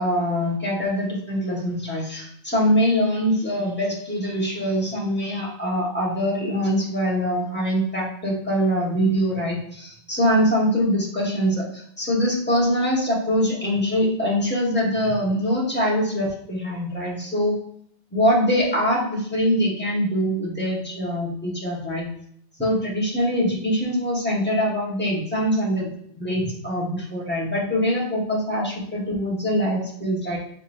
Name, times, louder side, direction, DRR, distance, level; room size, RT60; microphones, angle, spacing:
voice 1, 0.0-17.5 18.1-22.1 22.6-30.4, equal, 10° left, -5 dB, 1.2 m, -23 dB
4.8 x 3.5 x 2.6 m, 0.67 s
omnidirectional pair, 1.2 m